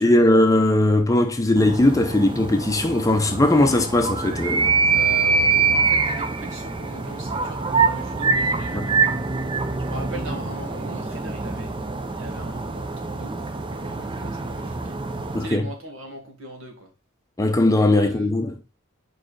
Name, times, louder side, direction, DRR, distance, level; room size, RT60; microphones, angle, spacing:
voice 1, 0.0-4.7 8.7-8.9 15.3-15.7 17.4-18.6, left 1 dB, 15° left, 0.6 m, -19 dB
sound 1, 1.6-15.5, right 4 dB, 25° right, 0.6 m, -24 dB
voice 2, 4.9-9.2 9.8-11.7 12.1-15.0 15.4-16.9 17.9-18.3, right 1 dB, 65° right, 2.0 m, -39 dB
4.8 x 4.6 x 4.8 m
head